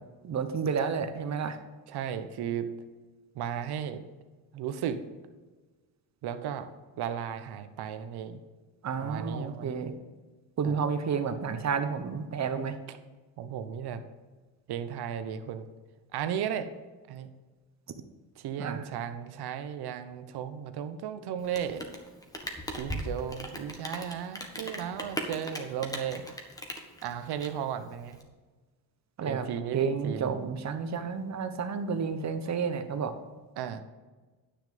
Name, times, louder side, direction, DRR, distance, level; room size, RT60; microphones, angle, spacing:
voice 1, 0.2-1.6 8.8-9.9 10.6-12.8 18.6-18.8 29.2-29.5 29.7-33.1, right 6 dB, 40° right, 9 dB, 1.1 m, -31 dB
voice 2, 1.9-2.7 3.3-4.0 4.5-5.0 6.2-6.7 7.0-8.4 9.0-9.9 10.6-10.8 12.9-13.0 13.4-14.0 14.7-15.7 16.1-16.7 17.1-17.3 18.4-21.9 22.7-26.3 27.0-28.2 29.2-30.3 33.6-33.8, right 8 dB, 65° right, 10 dB, 1.0 m, -35 dB
Rain, 21.4-28.2, equal, 10° left, 1.5 m, -39 dB
9.9 x 6.3 x 5.1 m, 1.3 s
cardioid pair, 105°, 42 cm